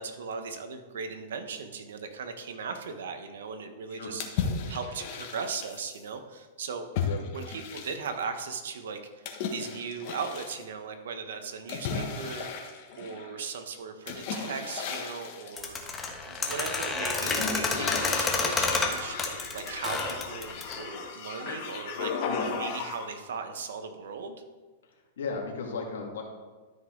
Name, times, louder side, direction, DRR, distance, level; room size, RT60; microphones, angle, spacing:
voice 1, 0.0-4.4 4.7-6.9 7.3-12.5 13.0-16.0 16.3-22.1 22.5-24.4, right 5 dB, 80° right, 7 dB, 1.3 m, -38 dB
sound 1, 4.2-6.0 6.9-8.2 9.2-10.6 11.7-13.4 14.1-15.6 16.2-16.9 17.2-23.2, left 5 dB, 50° left, 1.6 m, -35 dB
sound 2, 15.6-20.8, left 4 dB, 15° left, 1.3 m, -29 dB
voice 2, 25.2-26.2, left 4 dB, 85° left, 0 dB, 2.3 m, -35 dB
13.0 x 5.6 x 4.0 m, 1.3 s
supercardioid pair, 150°, 0 cm